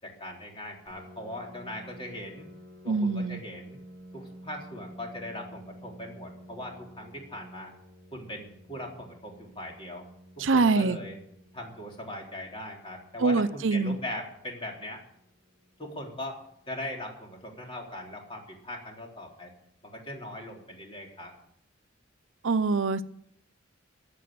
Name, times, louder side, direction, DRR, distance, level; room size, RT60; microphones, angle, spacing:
voice 1, 0.0-2.5 2.8-3.8 4.1-7.7 8.1-10.0 10.4-11.2 11.5-15.0 15.8-16.4 16.7-19.5 19.8-21.3, left 1 dB, 30° left, 0 dB, 3.8 m, -40 dB
Piano, 0.9-16.3, equal, 50° right, 6.3 m, -51 dB
voice 2, 2.9-3.4 10.4-11.0 13.2-14.0 22.4-23.2, right 4 dB, 70° right, 12 dB, 0.7 m, -24 dB
15.5 x 8.4 x 8.7 m, 0.71 s
head